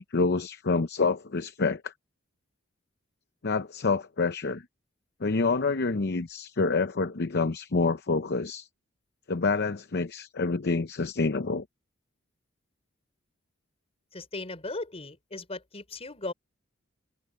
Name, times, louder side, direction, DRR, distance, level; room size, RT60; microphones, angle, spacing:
voice 1, 0.0-1.9 3.4-4.6 5.2-8.7 9.3-11.6, left 3 dB, 55° left, 0.7 m, -27 dB
voice 2, 14.1-16.3, left 2 dB, 30° left, 4.4 m, -37 dB
head